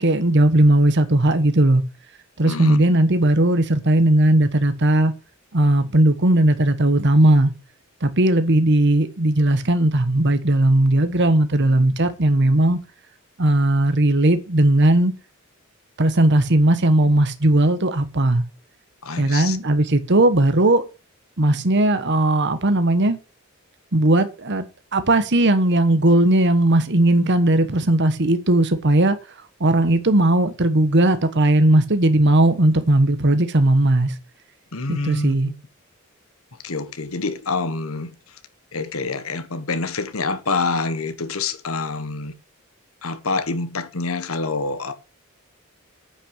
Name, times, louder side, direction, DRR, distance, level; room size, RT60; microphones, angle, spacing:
voice 1, 0.0-1.8 2.4-5.1 5.5-7.5 8.0-12.8 13.4-15.1 16.0-18.4 19.2-20.8 21.4-23.2 23.9-24.6 24.9-29.2 29.6-34.1 34.9-35.5, right 1 dB, 55° right, 1.3 m, -17 dB
voice 2, 2.4-2.8 19.0-19.6 34.7-35.5 36.6-38.1 38.7-42.3 43.0-44.9, left 3 dB, 80° left, 1.4 m, -26 dB
9.6 x 5.9 x 7.9 m
head